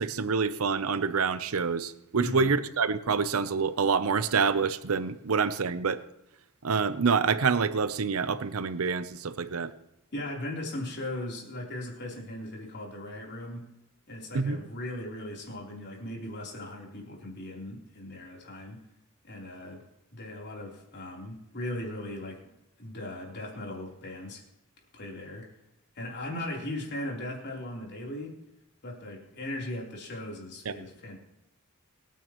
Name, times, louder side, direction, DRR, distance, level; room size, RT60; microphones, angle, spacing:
voice 1, 0.0-6.0 6.6-9.7 14.3-14.6 30.7-30.8, right 5 dB, 75° right, 13 dB, 0.7 m, -27 dB
voice 2, 2.2-2.5 10.1-13.7 14.1-18.8 19.2-19.8 20.1-22.4 22.8-24.4 24.9-25.5 25.9-28.3 28.8-31.2, left 1 dB, 55° left, -2 dB, 3.6 m, -38 dB
24.5 x 9.4 x 3.0 m, 0.90 s
head